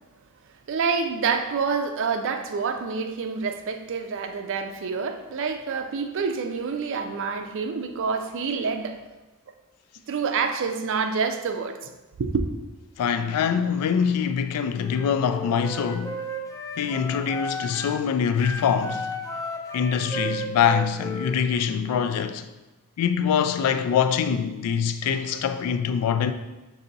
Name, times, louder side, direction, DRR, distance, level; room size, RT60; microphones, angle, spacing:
voice 1, 0.7-9.0 10.1-11.9 12.2-12.4, right 5 dB, 60° right, 0.4 m, -27 dB
voice 2, 13.0-16.2 16.8-19.1 19.7-22.5 23.0-26.3, left 7 dB, 85° left, 0.3 m, -24 dB
Wind instrument woodwind instrument, 14.7-18.0 18.3-21.8, equal, 15° left, 0.4 m, -34 dB
6.7 x 2.7 x 2.6 m
head